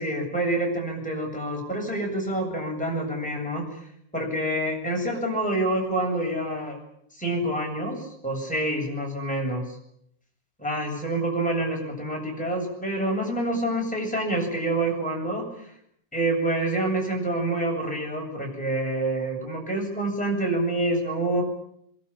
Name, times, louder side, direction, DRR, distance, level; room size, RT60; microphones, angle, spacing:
voice 1, 0.0-3.7 4.1-6.8 7.2-9.8 10.6-15.7 16.1-21.4, right 1 dB, ahead, -1 dB, 7.4 m, -27 dB
23.5 x 23.0 x 8.8 m, 0.73 s
omnidirectional pair, 5.2 m